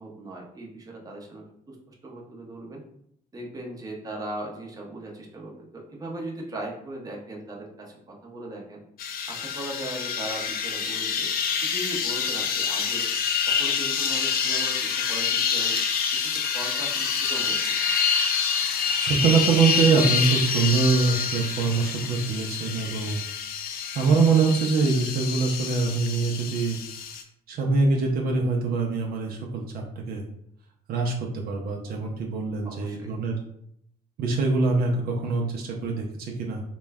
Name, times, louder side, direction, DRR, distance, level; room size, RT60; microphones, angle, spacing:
voice 1, 0.0-2.8 3.3-8.8 9.3-11.4 11.7-13.1 13.5-15.8 16.0-17.8 32.6-33.2, right 1 dB, 20° right, -1 dB, 0.7 m, -38 dB
sound 1, 9.0-27.2, left 6 dB, 60° left, 0.5 m, -27 dB
voice 2, 18.6-23.2 23.9-26.8 27.5-30.2 30.9-33.4 34.2-36.6, right 4 dB, 65° right, 0 dB, 0.6 m, -24 dB
3.0 x 2.2 x 3.4 m, 0.72 s
cardioid pair, 110°, 17 cm